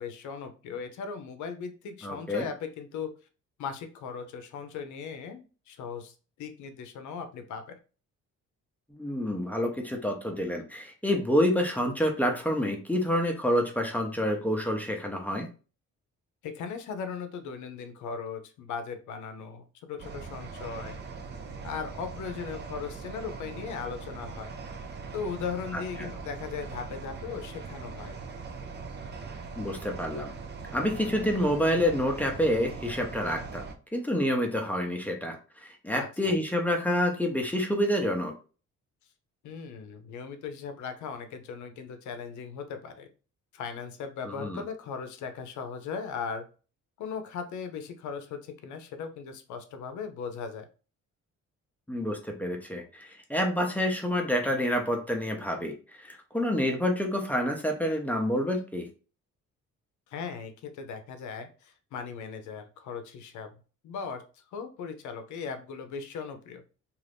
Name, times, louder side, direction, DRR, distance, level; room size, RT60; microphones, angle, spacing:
voice 1, 0.0-3.1 3.6-7.8 16.4-20.9 21.6-24.5 25.1-28.1 35.9-36.4 39.4-43.1 43.5-46.4 47.0-50.7 60.1-63.5 63.8-64.2 64.5-66.6, left 6 dB, 75° left, 8 dB, 0.6 m, -38 dB
voice 2, 2.0-2.5 8.9-15.5 25.7-26.1 29.6-30.3 30.7-35.4 35.6-38.3 44.3-44.6 51.9-58.9, equal, 5° left, 2 dB, 0.6 m, -28 dB
sound 1, 20.0-33.7, right 4 dB, 35° right, 0.5 m, -41 dB
2.5 x 2.5 x 3.4 m, 0.36 s
cardioid pair, 90°, 30 cm